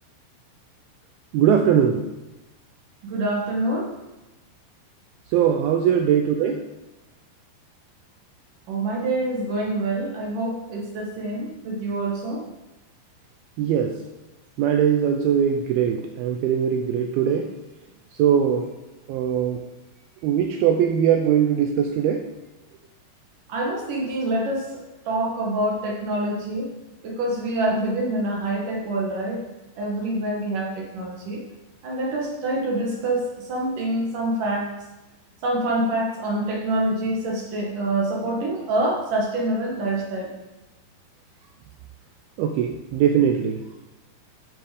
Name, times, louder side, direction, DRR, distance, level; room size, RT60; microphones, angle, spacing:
voice 1, 1.3-2.0 5.3-6.6 13.6-13.9 14.6-17.5 18.2-18.7 19.1-19.6 20.2-22.2 42.4-43.6, right 8 dB, 80° right, 4 dB, 2.4 m, -21 dB
voice 2, 3.0-3.9 8.7-12.4 23.5-24.7 25.1-26.7 27.0-29.4 29.8-31.4 31.8-34.7 35.4-40.3, right 1 dB, 60° right, -1 dB, 2.7 m, -26 dB
12.5 x 6.0 x 5.1 m, 1.0 s
omnidirectional pair, 4.7 m